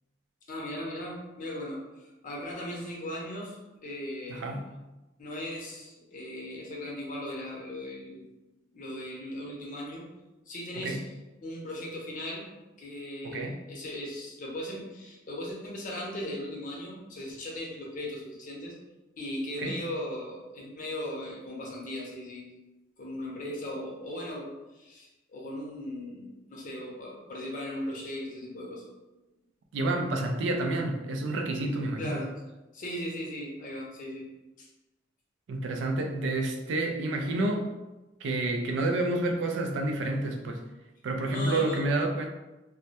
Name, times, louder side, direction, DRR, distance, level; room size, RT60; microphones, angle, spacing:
voice 1, 0.5-4.5 5.2-8.3 8.7-10.1 10.5-11.0 11.4-12.5 12.8-18.7 19.2-22.5 23.0-28.8 32.0-32.3 32.7-34.3 34.6-34.7 41.3-41.9, left 1 dB, 45° left, -3 dB, 0.6 m, -38 dB
voice 2, 4.3-4.8 10.8-11.0 13.2-13.6 19.6-19.8 29.7-32.2 35.5-37.7 38.2-40.6 41.0-42.3, right 2 dB, 80° right, 3 dB, 0.3 m, -29 dB
2.2 x 2.0 x 2.8 m, 1.0 s
head